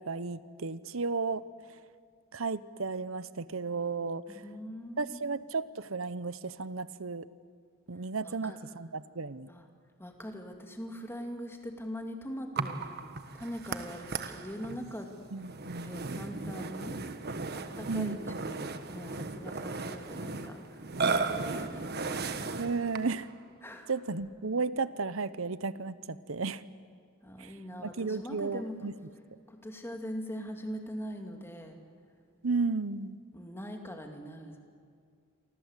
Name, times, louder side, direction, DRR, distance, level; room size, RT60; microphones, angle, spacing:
voice 1, 0.0-1.4 2.3-4.4 5.0-7.2 7.9-9.5 15.3-16.0 17.9-18.2 22.6-23.3 23.9-26.6 27.4-27.5 27.8-28.9 32.4-33.2, right 4 dB, 65° right, 16 dB, 0.9 m, -34 dB
voice 2, 4.4-5.4 8.2-8.6 9.5-9.7 10.0-12.9 13.3-15.2 15.8-17.0 17.5-22.5 23.6-24.1 27.2-28.9 29.5-31.8 33.3-34.6, equal, 10° left, 3 dB, 2.6 m, -42 dB
Burping eructation, 12.6-23.3, right 4 dB, 45° right, 1.4 m, -36 dB
29.0 x 24.5 x 8.3 m, 2.1 s
head